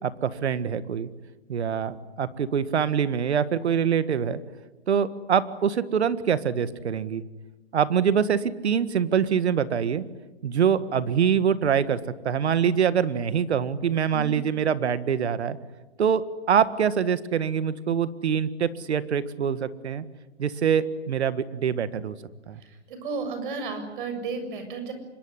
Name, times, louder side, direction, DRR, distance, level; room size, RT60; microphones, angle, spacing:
voice 1, 0.0-1.1 1.5-4.4 4.9-7.2 7.7-10.0 10.4-15.6 16.0-16.2 16.5-20.0 20.4-22.2 22.5-22.6, right 7 dB, 70° right, 14 dB, 1.8 m, -24 dB
voice 2, 22.6-24.9, right 4 dB, 45° right, 8 dB, 7.3 m, -33 dB
25.5 x 22.5 x 9.9 m, 1.1 s
hypercardioid pair, 150°, 35 cm